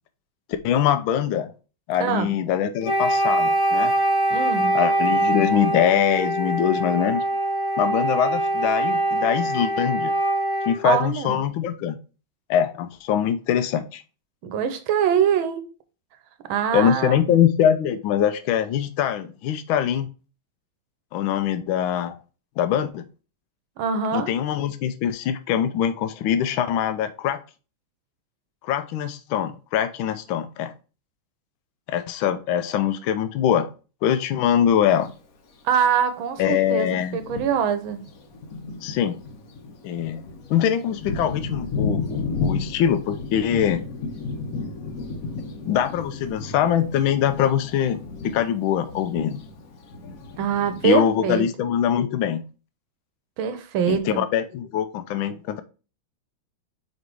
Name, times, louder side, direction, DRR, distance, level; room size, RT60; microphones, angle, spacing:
voice 1, 0.6-1.5 1.9-3.9 4.7-7.2 7.8-10.1 10.7-12.0 12.5-14.0 16.7-20.1 21.1-22.2 22.6-23.0 24.1-27.4 28.6-30.7 31.9-33.7 34.0-35.1 36.4-37.2 38.8-39.2 39.8-40.2 40.5-43.8 45.6-49.4 50.8-52.4 53.9-55.6, left 9 dB, 80° left, 1.4 m, -23 dB
voice 2, 2.0-2.3 4.3-4.8 10.8-11.4 14.4-15.6 16.5-17.4 23.8-24.3 35.6-38.0 50.4-51.4 53.4-54.2, right 8 dB, 90° right, 1.6 m, -23 dB
Wind instrument woodwind instrument, 2.8-10.9, right 1 dB, 35° left, 0.9 m, -23 dB
Thunder, 34.9-35.0 36.0-36.1 36.7-36.8 37.1-50.9, left 4 dB, 55° left, 1.2 m, -33 dB
5.1 x 4.2 x 4.7 m
omnidirectional pair, 2.2 m